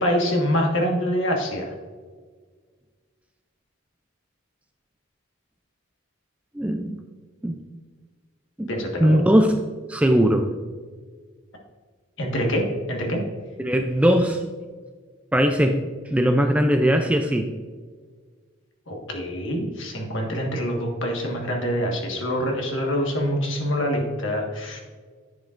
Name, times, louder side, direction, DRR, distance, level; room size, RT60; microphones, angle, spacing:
voice 1, 0.0-1.7 8.7-9.2 12.2-13.2 18.9-24.8, equal, 60° left, 1 dB, 1.5 m, -25 dB
voice 2, 6.5-7.0 7.4-7.6 8.6-9.6 9.9-10.5 13.6-14.4 15.3-15.8 16.1-17.5, equal, 5° right, 5 dB, 0.3 m, -20 dB
11.0 x 7.1 x 2.5 m, 1.5 s
head